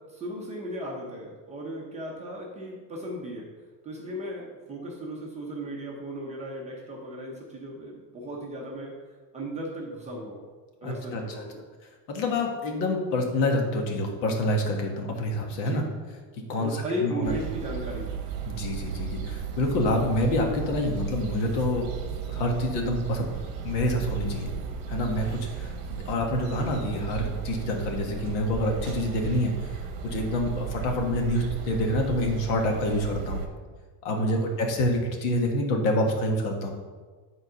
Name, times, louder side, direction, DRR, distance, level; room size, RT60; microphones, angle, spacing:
voice 1, 0.1-3.5 3.8-9.0 9.3-10.4 10.8-11.6 15.5-15.9 16.6-18.1 34.1-34.5, equal, 15° right, -3 dB, 0.6 m, -36 dB
voice 2, 10.8-11.2 12.1-15.8 16.5-17.3 18.4-23.3 23.6-24.5 24.9-29.7 30.0-33.4 34.0-36.7, left 1 dB, 65° left, 2 dB, 1.6 m, -27 dB
sound 1, 17.2-33.5, right 7 dB, 40° right, 1.0 m, -35 dB
8.9 x 3.9 x 5.5 m, 1.4 s
cardioid pair, 180°, 50 cm